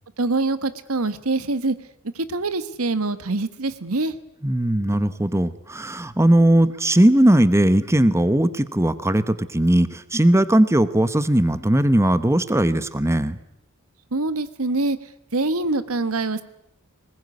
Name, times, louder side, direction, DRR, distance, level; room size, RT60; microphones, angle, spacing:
voice 1, 0.2-1.7 2.1-4.1 14.1-15.0 15.3-16.4, right 2 dB, 90° right, 13 dB, 1.4 m, -24 dB
voice 2, 4.4-13.4, right 1 dB, 15° right, 13 dB, 1.0 m, -18 dB
21.0 x 20.5 x 9.7 m, 0.78 s
head